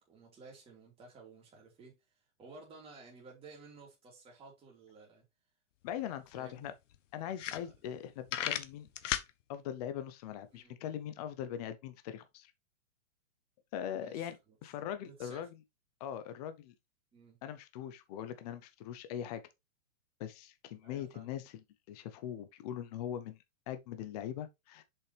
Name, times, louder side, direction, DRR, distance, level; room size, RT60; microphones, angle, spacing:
voice 1, 0.0-2.0 2.4-5.2 6.3-6.7 7.5-7.7 10.5-10.8 13.9-14.3 15.0-15.5 17.1-17.4 20.8-21.3, right 4 dB, 15° right, 3.0 m, -54 dB
voice 2, 5.8-6.7 7.1-8.9 9.5-12.5 13.7-15.5 16.0-16.7 17.4-19.4 20.2-23.4 23.7-24.8, left 10 dB, 30° left, 0.8 m, -41 dB
sound 1, 5.9-6.0 6.3-6.4 6.9-7.0 7.3-8.0 8.3-9.3, left 10 dB, 65° left, 1.0 m, -34 dB
6.8 x 5.5 x 3.4 m
hypercardioid pair, 160°, 40 cm